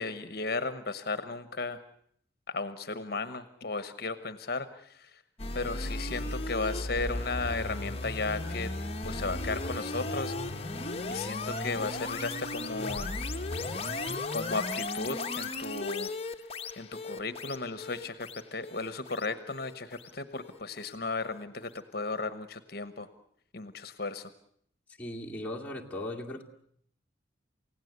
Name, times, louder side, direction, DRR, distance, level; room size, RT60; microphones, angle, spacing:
voice 1, 0.0-1.8 2.5-5.2 5.5-8.7 9.0-10.3 11.1-13.2 14.3-16.1 16.8-23.1 23.5-24.3, left 3 dB, 55° left, 12 dB, 1.1 m, -35 dB
sound 1, 5.4-20.6, left 2 dB, 30° left, 1.1 m, -36 dB
voice 2, 25.0-26.4, left 1 dB, 10° left, -3 dB, 2.3 m, -37 dB
29.0 x 17.0 x 8.0 m, 0.68 s
head